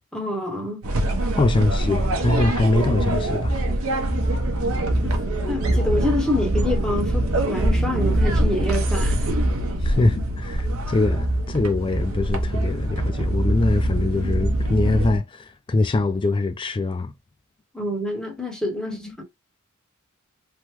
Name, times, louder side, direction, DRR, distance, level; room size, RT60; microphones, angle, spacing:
voice 1, 0.1-0.8 5.0-5.2 5.5-9.3 17.7-19.2, left 1 dB, 5° left, 0.9 m, -27 dB
sound 1, 0.8-15.2, right 1 dB, 65° right, 0.7 m, -23 dB
voice 2, 1.4-3.5 9.8-17.1 19.1-19.2, left 2 dB, 20° left, 0.3 m, -23 dB
3.3 x 2.0 x 3.0 m
head